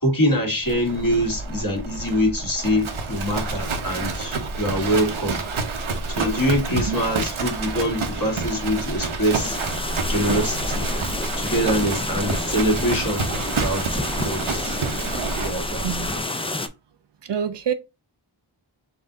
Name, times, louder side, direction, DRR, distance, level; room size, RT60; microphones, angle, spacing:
voice 1, 0.0-5.4 6.1-9.6 10.1-10.9 11.4-14.8 15.4-16.1, equal, 45° left, 1.6 m, -24 dB
Livestock farm animals working animals, 0.6-16.2, right 3 dB, 80° right, 0.9 m, -28 dB
sound 1, 9.3-16.7, left 2 dB, 15° left, 0.3 m, -30 dB
voice 2, 17.2-17.7, right 8 dB, 60° right, 0.5 m, -27 dB
4.1 x 2.6 x 3.8 m
wide cardioid pair, 55°, 48 cm